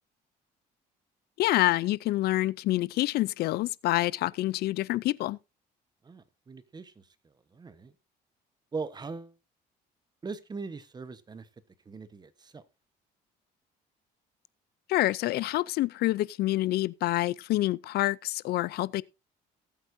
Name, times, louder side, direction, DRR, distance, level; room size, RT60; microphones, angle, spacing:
voice 1, 1.4-5.4 14.9-19.0, left 16 dB, 70° left, 0.4 m, -27 dB
voice 2, 6.0-7.1 7.5-7.9 8.7-9.3 10.2-11.5 11.9-12.6, right 4 dB, 25° right, 1.1 m, -40 dB
18.5 x 8.3 x 2.7 m
cardioid pair, 110°, 17 cm